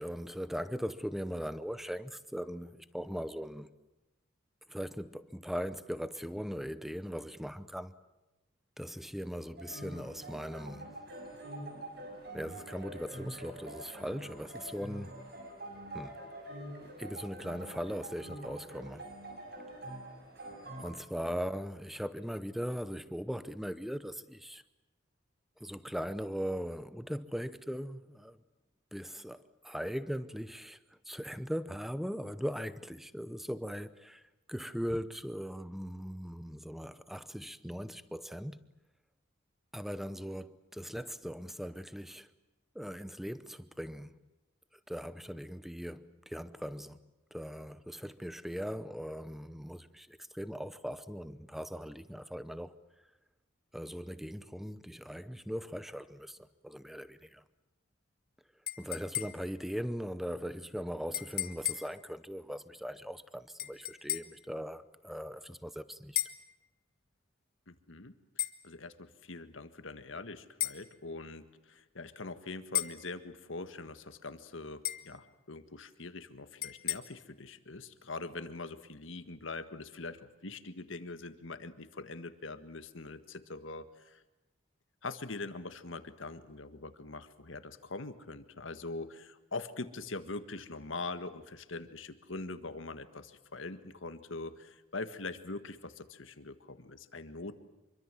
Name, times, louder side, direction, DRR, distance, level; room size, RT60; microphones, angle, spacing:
voice 1, 0.0-3.7 4.7-7.9 8.8-10.9 12.3-15.3 15.9-16.2 17.0-19.1 20.8-24.6 25.6-28.4 28.9-30.8 31.0-34.2 34.5-38.6 39.7-42.3 42.7-44.2 44.9-47.0 47.3-52.7 53.7-56.4 56.6-57.4 58.8-66.2, equal, ahead, 0.8 m, -39 dB
sound 1, 9.6-20.8, right 1 dB, 50° right, 6.3 m, -46 dB
sound 2, 58.7-59.6 61.1-62.0 63.6-64.4 66.2-66.5 68.4-68.6 70.6-70.8 72.7-73.1 74.8-75.2 76.6-77.0, left 13 dB, 45° left, 1.5 m, -35 dB
voice 2, 67.7-68.1 68.6-84.2 85.0-97.6, left 3 dB, 75° left, 1.7 m, -43 dB
26.5 x 24.0 x 7.7 m
head